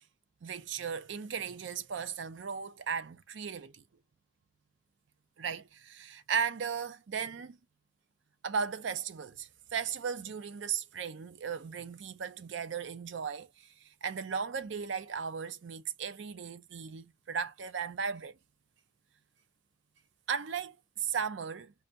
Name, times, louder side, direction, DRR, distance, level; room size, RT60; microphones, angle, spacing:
voice 1, 0.4-3.8 5.4-7.6 8.4-18.3 20.3-21.7, right 6 dB, 65° right, 0.5 m, -36 dB
5.3 x 2.3 x 2.6 m
head